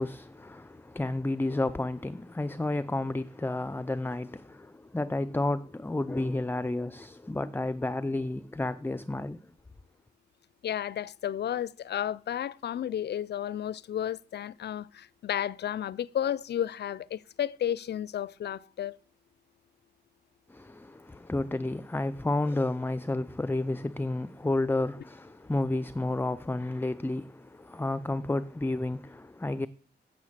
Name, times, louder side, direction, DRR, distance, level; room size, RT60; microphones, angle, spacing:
voice 1, 0.0-9.5 20.5-29.7, left 2 dB, 10° left, 0.5 m, -31 dB
voice 2, 10.6-19.0, left 10 dB, 70° left, 0.4 m, -32 dB
8.6 x 7.2 x 7.3 m
cardioid pair, 85°, 18 cm